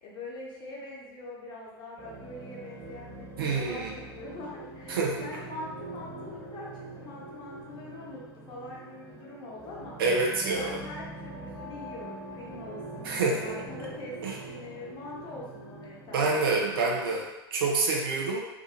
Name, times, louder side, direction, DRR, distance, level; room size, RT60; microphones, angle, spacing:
voice 1, 0.0-9.9 10.4-16.5, left 2 dB, 35° left, -4 dB, 0.8 m, -43 dB
sound 1, 2.0-17.2, right 2 dB, 5° right, 1.3 m, -43 dB
voice 2, 3.4-3.9 4.9-5.2 10.0-10.8 13.0-13.4 14.2-14.3 16.1-18.4, right 3 dB, 60° right, -1 dB, 0.6 m, -27 dB
2.6 x 2.4 x 2.7 m, 1.0 s
figure-of-eight pair, 85°, 13 cm